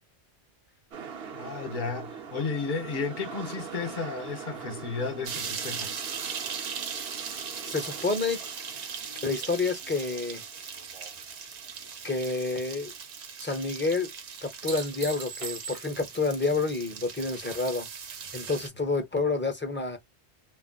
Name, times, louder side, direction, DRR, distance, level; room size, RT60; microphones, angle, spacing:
sound 1, 0.9-13.0 13.2-13.3, right 6 dB, 65° right, 0.9 m, -44 dB
voice 1, 1.3-5.9, left 4 dB, 50° left, 1.0 m, -33 dB
sound 2, 5.3-18.7, right 6 dB, 90° right, 1.0 m, -39 dB
voice 2, 7.6-8.4 9.2-10.4 12.0-12.9 13.4-14.1 14.4-17.9 18.3-20.0, left 3 dB, 15° left, 0.6 m, -29 dB
sound 3, 7.8-11.3 11.6-12.2 14.3-16.2 18.8-18.9, right 5 dB, 45° right, 0.5 m, -44 dB
2.4 x 2.0 x 3.8 m
omnidirectional pair, 1.1 m